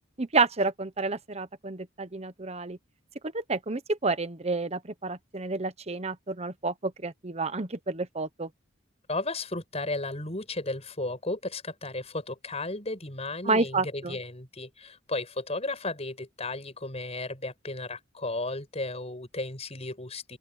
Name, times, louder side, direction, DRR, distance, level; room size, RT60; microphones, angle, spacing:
voice 1, 0.2-2.8 3.3-8.5 13.4-14.2, right 3 dB, 35° right, 1.1 m, -29 dB
voice 2, 9.1-20.4, left 2 dB, 35° left, 6.6 m, -34 dB
open air
head